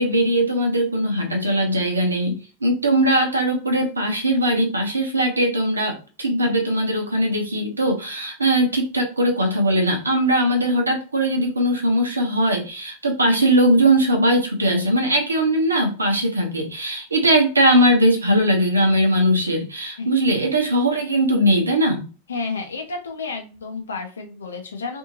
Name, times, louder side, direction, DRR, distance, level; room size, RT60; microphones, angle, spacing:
voice 1, 0.0-22.1, right 1 dB, 80° right, 3 dB, 0.8 m, -20 dB
voice 2, 22.3-25.0, left 4 dB, 70° left, 3 dB, 0.8 m, -31 dB
2.6 x 2.6 x 2.8 m, 0.35 s
figure-of-eight pair, 90°, 0 cm